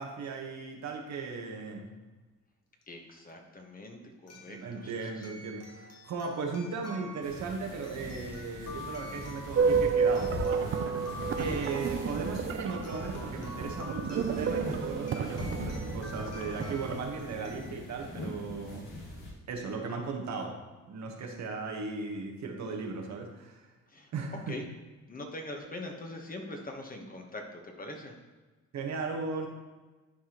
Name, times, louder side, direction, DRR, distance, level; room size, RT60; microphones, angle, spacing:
voice 1, 0.0-1.9 4.5-10.7 11.3-18.9 19.5-20.6 20.9-23.7 24.1-24.6 28.7-29.5, right 4 dB, 65° right, 1 dB, 1.4 m, -37 dB
sound 1, 2.8-2.9 4.3-17.7, left 2 dB, 55° left, 1.6 m, -48 dB
voice 2, 2.9-5.3 23.9-24.1 24.5-24.6 25.1-28.1, left 1 dB, 30° left, 2 dB, 1.3 m, -43 dB
sound 2, 7.2-19.3, left 1 dB, 90° left, 1.8 m, -41 dB
sound 3, 9.6-17.0, right 6 dB, 45° right, 0.5 m, -31 dB
11.0 x 4.8 x 3.0 m, 1.2 s
cardioid pair, 90°, 30 cm